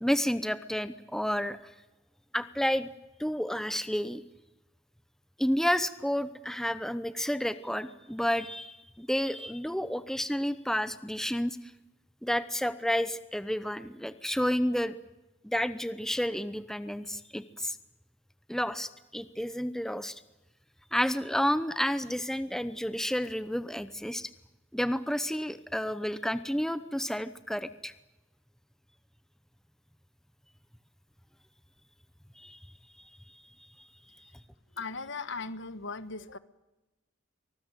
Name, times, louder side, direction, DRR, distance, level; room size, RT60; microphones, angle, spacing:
voice 1, 0.0-1.6 2.3-2.9 3.2-4.2 5.4-11.6 12.2-14.9 15.4-17.8 18.5-20.2 20.9-24.3 24.7-27.9 32.4-32.6, equal, ahead, 13 dB, 0.8 m, -30 dB
voice 2, 34.8-36.4, left 4 dB, 65° left, 14 dB, 1.3 m, -38 dB
24.5 x 20.0 x 9.1 m, 1.0 s
head